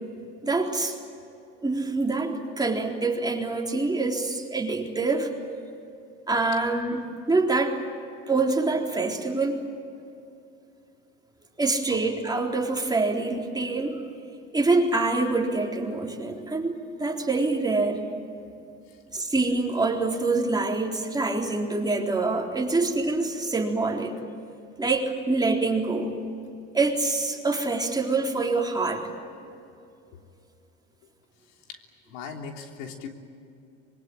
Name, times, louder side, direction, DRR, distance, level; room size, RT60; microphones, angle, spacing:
voice 1, 0.4-1.0 1.6-5.3 6.3-7.8 8.3-9.6 11.6-14.0 14.5-16.7 17.0-18.0 19.1-24.1 24.8-26.1 26.7-29.1, right 3 dB, 10° right, 0 dB, 3.8 m, -25 dB
voice 2, 32.1-33.1, left 6 dB, 70° left, 3 dB, 3.4 m, -39 dB
25.5 x 23.0 x 9.0 m, 2.6 s
hypercardioid pair, 90°, 36 cm